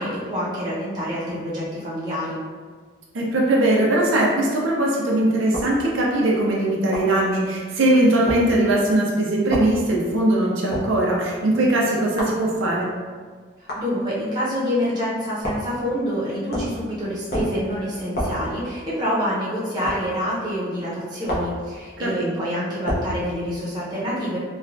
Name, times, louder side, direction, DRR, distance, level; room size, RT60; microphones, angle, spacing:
voice 1, 0.0-2.4 13.6-24.4, equal, 20° right, -8 dB, 0.8 m, -27 dB
voice 2, 3.1-12.9 22.0-22.5, right 1 dB, 90° right, -3 dB, 0.5 m, -20 dB
sound 1, 5.5-5.8 6.9-7.1 8.3-8.4 9.5-9.7 10.7-10.9 12.2-12.4 13.7-13.9 15.4-15.7 16.5-16.8 17.3-17.6 18.2-18.4 19.9-20.0 21.3-21.6 22.9-23.1, equal, 55° left, 0.7 m, -27 dB
3.2 x 2.3 x 2.5 m, 1.6 s
head